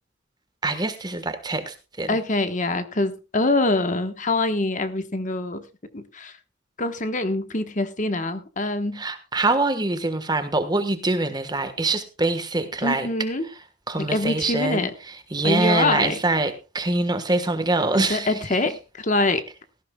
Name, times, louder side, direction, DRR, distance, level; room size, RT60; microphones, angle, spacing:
voice 1, 0.6-2.2 8.9-13.1 13.4-13.6 13.9-18.7, right 2 dB, 20° right, 1.3 m, -24 dB
voice 2, 2.1-5.6 5.9-6.3 6.8-9.0 12.8-13.4 14.0-14.9 15.4-16.2 18.1-18.7 19.0-19.4, left 2 dB, 40° left, 1.2 m, -24 dB
18.0 x 14.5 x 2.3 m
head